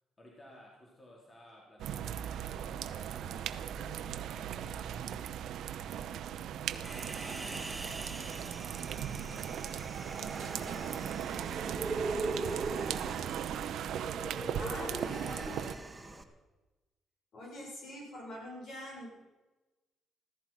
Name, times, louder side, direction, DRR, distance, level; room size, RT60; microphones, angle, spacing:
voice 1, 0.2-5.4 6.7-13.7 14.3-14.9 15.5-16.3, left 1 dB, 30° left, -3 dB, 4.4 m, -57 dB
sound 1, 1.8-15.8, right 9 dB, 75° right, 0.8 m, -38 dB
Human voice, 6.8-16.2, right 2 dB, 15° right, 1.6 m, -40 dB
voice 2, 14.5-15.7 17.3-19.1, equal, 65° left, -2 dB, 7.2 m, -43 dB
15.0 x 14.0 x 6.0 m, 1.1 s
cardioid pair, 90°, 0 cm